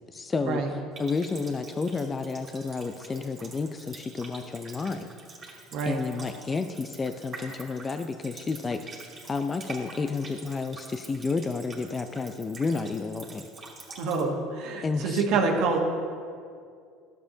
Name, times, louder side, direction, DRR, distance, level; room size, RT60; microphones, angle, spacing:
voice 1, 0.1-0.6 1.0-5.1 5.8-8.8 9.2-13.5 14.8-15.2, left 4 dB, 25° left, 8 dB, 0.4 m, -31 dB
Water tap faucet, 0.9-14.2, right 3 dB, 40° right, 2.1 m, -46 dB
voice 2, 5.7-6.0 14.0-15.8, right 4 dB, 65° right, 1 dB, 1.2 m, -27 dB
12.0 x 7.0 x 2.8 m, 2.3 s
hypercardioid pair, 75°, 0 cm